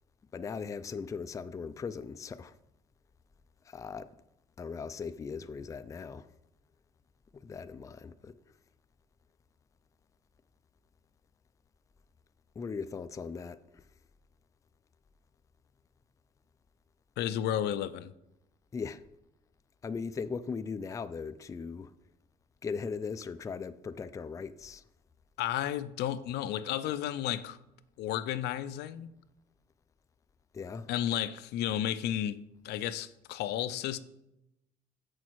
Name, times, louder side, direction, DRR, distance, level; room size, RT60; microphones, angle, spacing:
voice 1, 0.3-2.5 3.7-4.1 4.6-6.3 7.3-8.4 12.6-13.8 18.7-19.0 19.8-21.9 22.6-24.8 30.5-30.9, left 5 dB, 20° left, 0.3 m, -39 dB
voice 2, 17.2-18.1 25.4-27.6 28.0-29.1 30.9-34.0, left 11 dB, 75° left, 0.5 m, -32 dB
6.9 x 6.3 x 4.5 m
cardioid pair, 110°, 17 cm